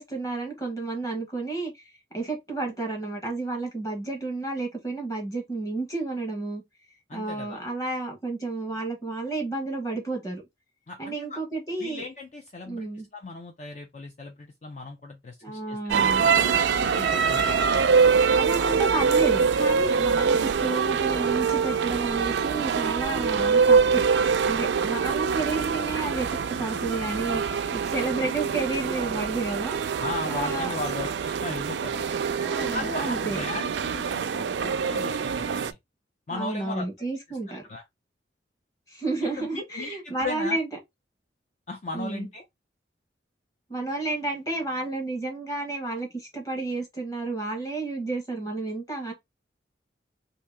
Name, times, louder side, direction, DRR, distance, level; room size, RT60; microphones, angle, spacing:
voice 1, 0.0-1.8 2.1-6.6 7.1-10.4 11.0-12.0 12.6-13.1 15.4-16.3 18.3-24.0 24.5-29.8 30.3-31.1 32.4-33.4 36.3-37.6 38.9-40.7 41.9-42.3 43.7-49.1, right 3 dB, 20° left, 1.1 m, -31 dB
voice 2, 7.1-7.6 10.9-11.4 11.8-15.8 16.2-17.6 30.0-32.0 32.7-35.8 36.3-36.9 37.3-37.8 39.3-40.6 41.7-42.4, left 3 dB, 40° left, 0.5 m, -37 dB
sound 1, 15.9-35.7, right 5 dB, 75° right, 0.4 m, -24 dB
2.8 x 2.7 x 3.3 m
head